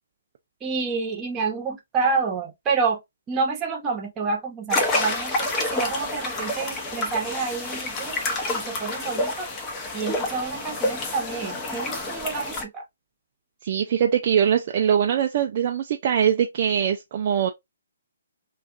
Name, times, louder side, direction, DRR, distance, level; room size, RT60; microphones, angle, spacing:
voice 1, 0.6-3.0 3.3-9.5 9.9-12.8, right 4 dB, 20° right, 0.8 m, -28 dB
sound 1, 4.7-12.6, left 2 dB, 20° left, 0.7 m, -28 dB
voice 2, 13.6-17.5, right 8 dB, 45° right, 0.3 m, -22 dB
2.3 x 2.3 x 2.5 m
figure-of-eight pair, 135°, 0 cm